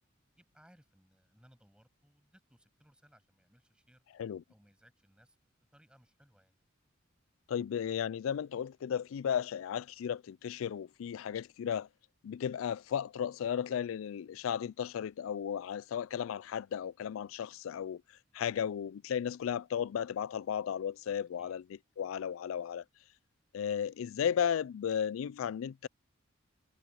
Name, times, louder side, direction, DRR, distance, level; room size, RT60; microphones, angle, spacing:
voice 1, 0.4-4.0 4.5-5.4 5.7-6.6 21.4-21.5, equal, 5° right, 7.7 m, -64 dB
voice 2, 7.5-11.9 12.2-18.0 18.3-21.6 22.0-22.8 23.5-25.9, left 8 dB, 90° left, 0.3 m, -34 dB
head